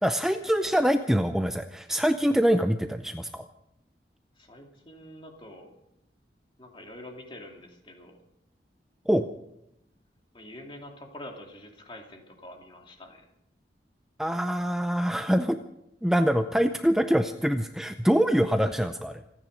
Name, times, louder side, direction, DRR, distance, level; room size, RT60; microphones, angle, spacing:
voice 1, 0.0-3.5 9.1-9.3 14.2-15.6 16.0-19.2, equal, 5° right, 7 dB, 0.5 m, -24 dB
voice 2, 4.4-5.8 6.6-8.2 10.3-13.2, left 1 dB, 30° left, 2 dB, 2.6 m, -46 dB
27.0 x 10.0 x 5.2 m, 0.81 s
head